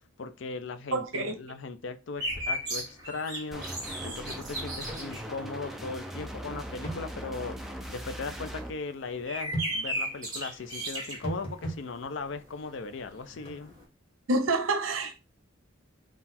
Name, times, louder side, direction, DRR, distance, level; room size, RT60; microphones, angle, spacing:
voice 1, 0.2-3.6 4.0-7.6 7.9-13.7, left 4 dB, 65° left, 0.5 m, -38 dB
voice 2, 0.9-1.4 14.3-15.1, right 2 dB, 85° right, 0.7 m, -27 dB
sound 1, 2.2-12.3 12.6-12.7 12.9-13.8, right 1 dB, 20° right, 1.5 m, -36 dB
sound 2, 3.5-8.7, right 1 dB, ahead, 0.4 m, -40 dB
sound 3, 4.9-5.1 5.3-5.4 6.8-7.1 9.5-9.7 11.2-11.8 13.4-13.6, right 1 dB, 30° left, 1.2 m, -35 dB
3.9 x 2.3 x 4.1 m
head